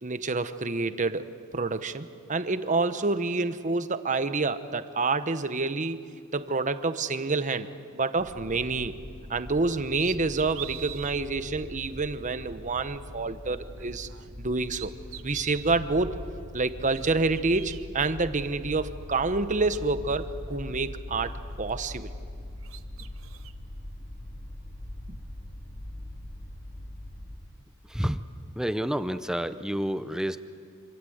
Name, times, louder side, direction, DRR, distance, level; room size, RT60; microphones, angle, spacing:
voice 1, 0.0-8.9 9.3-14.1 14.4-14.9 15.2-16.2 16.5-22.1 25.1-25.2, right 3 dB, 35° right, 11 dB, 1.0 m, -28 dB
sound 1, 8.2-27.4, left 1 dB, 45° left, 5.8 m, -42 dB
sound 2, 9.2-9.4 9.9-11.2 11.9-12.0 13.7-14.4 14.7-15.8 16.7-17.9 19.0-19.1 19.5-21.2 21.5-22.4 22.6-23.5, right 12 dB, 70° right, 1.0 m, -44 dB
voice 2, 27.9-28.2 28.6-30.4, equal, 5° right, 11 dB, 0.6 m, -29 dB
26.5 x 26.5 x 8.0 m, 2.2 s
head